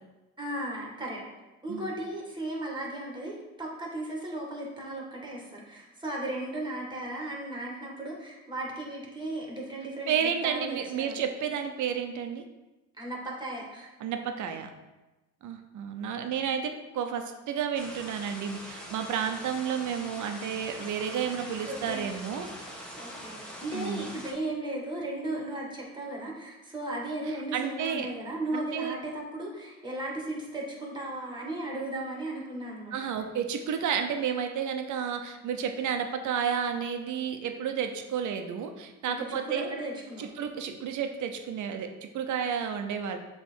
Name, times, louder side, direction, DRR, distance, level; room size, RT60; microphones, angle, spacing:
voice 1, 0.4-1.2 1.6-11.3 12.9-13.9 21.3-21.4 21.6-22.1 23.0-33.1 39.1-40.2, right 1 dB, 15° right, -2 dB, 1.9 m, -36 dB
voice 2, 10.1-12.4 14.0-14.7 15.4-22.5 23.7-24.1 27.5-28.1 28.5-28.9 32.9-39.7 40.2-43.2, right 7 dB, 75° right, 6 dB, 0.8 m, -31 dB
sound 1, 17.7-24.3, equal, 5° left, 1.4 m, -43 dB
7.1 x 3.3 x 4.5 m, 1.1 s
cardioid pair, 90°, 30 cm